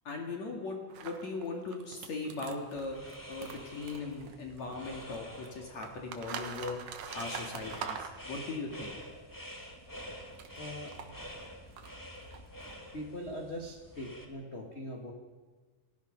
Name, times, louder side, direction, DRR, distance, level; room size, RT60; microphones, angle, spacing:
voice 1, 0.0-9.0, left 3 dB, 50° left, 1 dB, 3.3 m, -39 dB
sound 1, 0.9-4.9 5.1-8.8 9.9-13.2, right 7 dB, 65° right, 2.9 m, -44 dB
sound 2, 2.7-14.2, equal, 10° left, 1.5 m, -47 dB
voice 2, 10.6-11.0 12.9-15.1, equal, 25° left, 1 dB, 1.5 m, -41 dB
30.0 x 17.0 x 5.3 m, 1.4 s
omnidirectional pair, 4.2 m